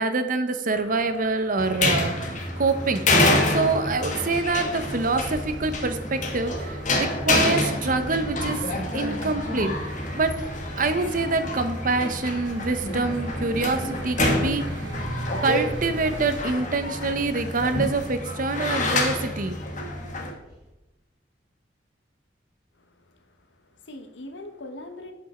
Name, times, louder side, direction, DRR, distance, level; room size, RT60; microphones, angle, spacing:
voice 1, 0.0-3.0 3.5-6.8 7.2-8.6 8.9-9.7 10.1-10.3 10.8-14.7 15.4-19.6, right 3 dB, 50° right, 9 dB, 0.7 m, -25 dB
sound 1, 0.7-16.4, right 2 dB, 85° right, 1.1 m, -42 dB
sound 2, 1.6-20.3, left 2 dB, 45° left, 1.3 m, -27 dB
sound 3, 3.4-20.7, equal, 5° right, 3.0 m, -45 dB
voice 2, 22.8-25.1, left 1 dB, 85° left, 7 dB, 1.1 m, -42 dB
10.5 x 5.3 x 4.3 m, 0.96 s
head